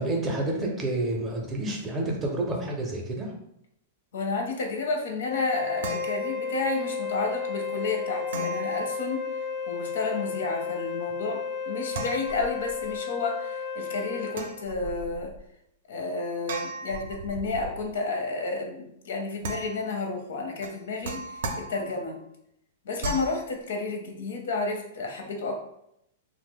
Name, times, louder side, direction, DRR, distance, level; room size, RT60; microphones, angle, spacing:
voice 1, 0.0-3.3, right 2 dB, 15° right, 0 dB, 0.5 m, -29 dB
voice 2, 4.1-9.3 9.7-15.3 15.9-22.2 22.8-25.6, left 3 dB, 80° left, 3 dB, 0.7 m, -31 dB
Wind instrument woodwind instrument, 5.3-14.4, left 5 dB, 45° left, 0.3 m, -33 dB
sound 1, 5.3-6.9 8.3-9.7 11.9-13.0 14.3-15.4 16.5-17.9 19.4-20.1 20.6-22.2 23.0-23.4, right 2 dB, 70° right, 0.4 m, -37 dB
2.8 x 2.0 x 3.6 m, 0.76 s
supercardioid pair, 170°, 0 cm